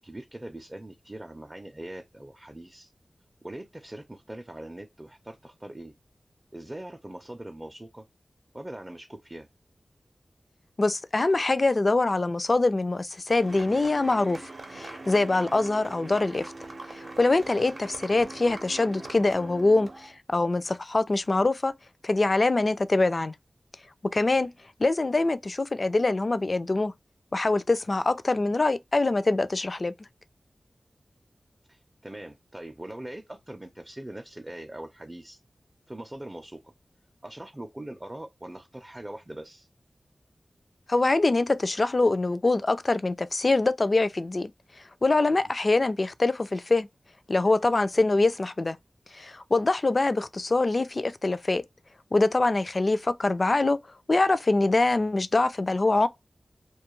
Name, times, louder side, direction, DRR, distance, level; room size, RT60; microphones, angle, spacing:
voice 1, 0.0-2.9 3.4-5.9 6.5-8.0 8.5-9.5 31.7-35.4 35.9-36.6 37.2-39.7, right 1 dB, 25° right, 0.4 m, -41 dB
voice 2, 10.8-14.4 14.7-16.5 16.9-21.7 22.0-23.3 24.0-24.5 24.8-26.9 27.3-29.9 40.9-44.5 45.0-46.9 47.3-48.8 49.1-51.6 52.1-53.8 54.1-56.1, left 2 dB, 50° left, 0.3 m, -24 dB
sound 1, 13.4-20.2, right 2 dB, 70° right, 0.6 m, -42 dB
2.3 x 2.1 x 3.0 m
cardioid pair, 40°, 0 cm